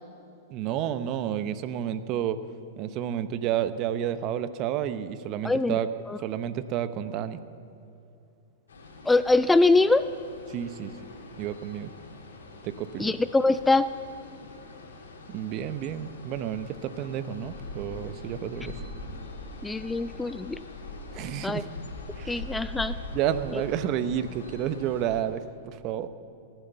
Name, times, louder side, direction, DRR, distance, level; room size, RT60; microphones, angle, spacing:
voice 1, 0.5-2.4 2.8-5.9 6.2-7.4 10.5-10.9 11.4-11.9 12.6-13.1 15.3-18.8 21.1-21.7 22.2-22.4 23.1-26.1, right 10 dB, 45° right, 13 dB, 0.8 m, -30 dB
voice 2, 5.4-5.8 6.1-6.2 9.1-10.1 13.0-13.9 19.6-20.6 21.4-21.6 22.3-22.9, left 3 dB, 10° left, 13 dB, 0.4 m, -23 dB
sound 1, 8.7-25.2, left 2 dB, 85° left, 2.8 m, -42 dB
18.5 x 9.0 x 6.8 m, 2.6 s
hypercardioid pair, 115°, 0 cm